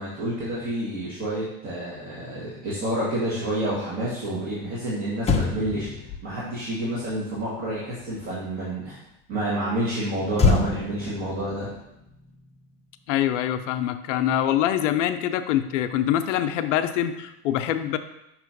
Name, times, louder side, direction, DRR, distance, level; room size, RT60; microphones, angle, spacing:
voice 1, 0.0-5.9 6.2-9.0 9.3-11.7, right 1 dB, 40° right, -8 dB, 2.1 m, -29 dB
Motor vehicle (road), 4.8-4.9 5.2-8.7 10.3-12.9 13.2-13.5, left 4 dB, 15° left, 0.7 m, -28 dB
voice 2, 13.1-18.0, left 11 dB, 80° left, 9 dB, 0.6 m, -24 dB
6.4 x 3.1 x 5.2 m, 0.84 s
supercardioid pair, 105°, 36 cm